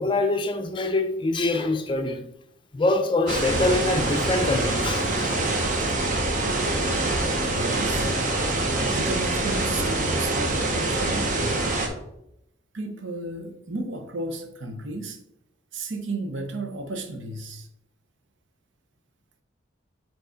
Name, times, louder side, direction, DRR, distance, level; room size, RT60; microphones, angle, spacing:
voice 1, 0.0-2.2 2.7-5.3, left 2 dB, 25° left, 0.5 m, -24 dB
sound 1, 3.3-11.9, right 2 dB, 40° right, 0.9 m, -25 dB
voice 2, 7.5-8.1 8.9-11.6 12.7-15.2 15.7-17.7, right 2 dB, 75° right, 0.8 m, -33 dB
4.7 x 3.9 x 5.1 m
head